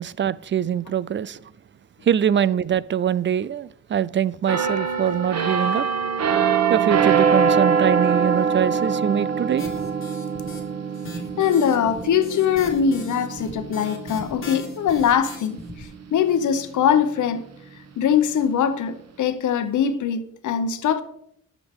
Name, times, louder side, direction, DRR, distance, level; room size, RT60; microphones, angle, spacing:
voice 1, 0.0-1.4 2.0-5.9 6.7-9.7, right 9 dB, 40° right, 0.4 m, -23 dB
sound 1, 4.5-16.0 16.5-16.7, right 6 dB, 60° right, 1.2 m, -24 dB
sound 2, 9.6-10.6 10.9-15.9, left 2 dB, 45° left, 1.9 m, -39 dB
voice 2, 11.4-17.5 18.0-21.0, left 8 dB, 85° left, 0.9 m, -22 dB
11.0 x 7.2 x 3.6 m
cardioid pair, 85°, 29 cm